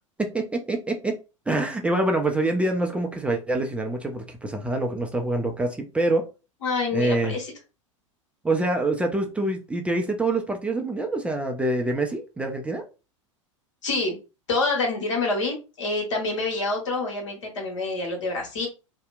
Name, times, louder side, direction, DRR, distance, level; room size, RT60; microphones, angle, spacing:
voice 1, 0.2-1.1 1.5-6.3 6.9-7.4 8.4-12.8, right 2 dB, 5° right, 2 dB, 0.4 m, -25 dB
voice 2, 6.6-7.5 13.8-14.2 14.5-18.7, left 3 dB, 65° left, 0 dB, 1.2 m, -27 dB
2.7 x 2.0 x 2.4 m, 0.31 s
figure-of-eight pair, 90°, 17 cm